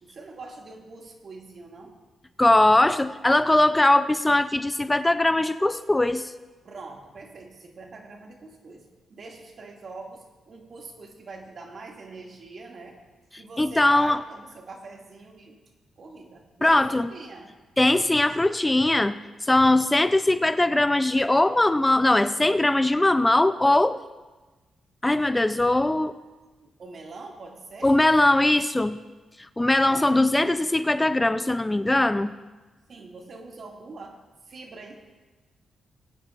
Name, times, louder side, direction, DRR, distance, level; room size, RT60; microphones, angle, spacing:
voice 1, 0.0-2.0 6.6-13.0 13.4-15.6 16.0-17.5 26.6-27.9 29.8-30.6 32.9-34.2 34.5-34.9, right 3 dB, 60° right, 1 dB, 2.1 m, -43 dB
voice 2, 2.4-6.3 13.6-14.2 16.6-17.1 17.8-24.0 25.0-26.2 27.8-29.0 29.6-32.3, left 2 dB, 15° left, 12 dB, 0.4 m, -21 dB
20.5 x 9.9 x 2.5 m, 1.2 s
cardioid pair, 65°, 0 cm